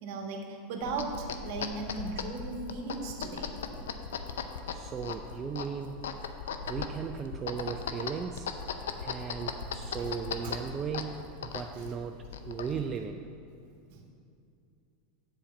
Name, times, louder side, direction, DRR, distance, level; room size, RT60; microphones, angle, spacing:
voice 1, 0.0-3.6 10.0-10.1 10.4-10.6 11.8-11.9 12.8-12.9 13.9-14.0, right 3 dB, 60° right, 3 dB, 1.2 m, -37 dB
sound 1, 0.8-13.0, left 6 dB, 85° left, 0.5 m, -38 dB
voice 2, 4.7-6.0 6.7-8.5 9.0-13.3, right 6 dB, 30° right, 5 dB, 0.4 m, -37 dB
7.7 x 4.2 x 6.9 m, 2.5 s
hypercardioid pair, 100°, 0 cm